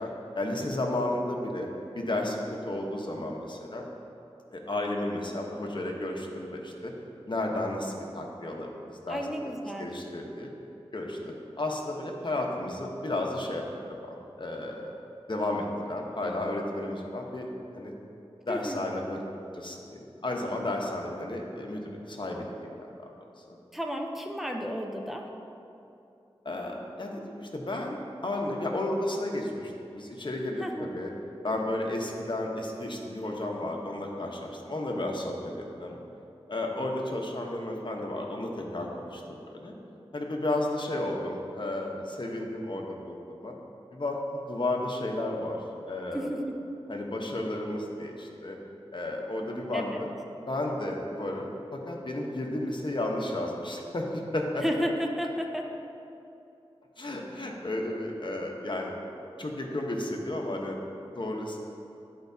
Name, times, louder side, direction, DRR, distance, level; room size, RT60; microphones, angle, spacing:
voice 1, 0.0-1.7 1.9-3.9 4.5-6.9 7.3-9.5 9.8-10.5 10.9-13.6 14.0-14.9 15.3-17.9 18.5-19.2 19.5-23.1 23.5-23.6 26.4-31.1 31.4-36.0 36.5-39.7 40.1-43.5 43.9-46.3 46.9-48.6 48.9-50.1 50.5-54.6 57.0-58.9 59.4-60.8 61.1-61.6, left 1 dB, 50° left, 0 dB, 1.0 m, -33 dB
voice 2, 9.1-9.9 18.5-18.8 23.7-25.3 30.6-30.9 46.1-46.6 49.7-50.0 54.6-55.7, equal, ahead, 1 dB, 0.8 m, -32 dB
11.0 x 4.7 x 2.7 m, 2.8 s
cardioid pair, 45°, 10 cm